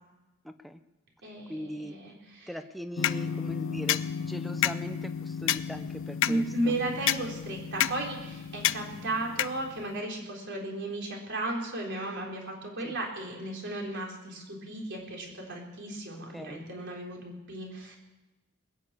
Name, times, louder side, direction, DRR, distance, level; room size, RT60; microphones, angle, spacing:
voice 1, 0.4-0.8 1.5-2.0 2.5-6.8 12.8-12.9 16.1-16.7, equal, ahead, 7 dB, 0.6 m, -40 dB
voice 2, 1.2-2.5 6.2-18.0, right 1 dB, 55° right, 0 dB, 3.9 m, -35 dB
sound 1, 3.0-10.0, left 10 dB, 65° left, 0.4 m, -31 dB
21.0 x 7.0 x 8.4 m, 1.0 s
head